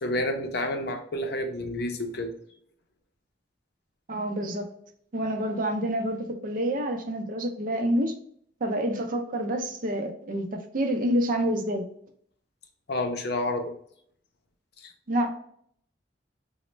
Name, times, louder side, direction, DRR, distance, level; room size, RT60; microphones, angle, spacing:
voice 1, 0.0-2.3 12.9-13.7 14.8-14.9, left 1 dB, 60° left, 0.6 m, -29 dB
voice 2, 4.1-4.7 5.1-8.1 8.6-11.8 15.1-15.3, equal, 50° right, 0.5 m, -28 dB
4.0 x 2.1 x 3.1 m
head